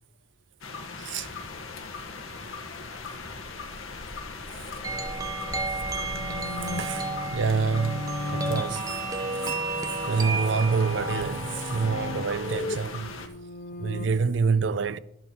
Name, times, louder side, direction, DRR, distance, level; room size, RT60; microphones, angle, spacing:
sound 1, 0.6-13.3, left 4 dB, 90° left, 1.4 m, -39 dB
voice 1, 1.0-1.3 6.6-9.6 10.1-13.3 13.8-15.0, right 5 dB, 65° right, 0.4 m, -27 dB
voice 2, 2.2-6.3, left 1 dB, 65° left, 2.9 m, -56 dB
sound 2, 4.8-12.6, right 3 dB, 15° right, 0.5 m, -33 dB
sound 3, 5.2-14.1, left 3 dB, 40° left, 0.4 m, -37 dB
11.0 x 8.8 x 4.4 m
head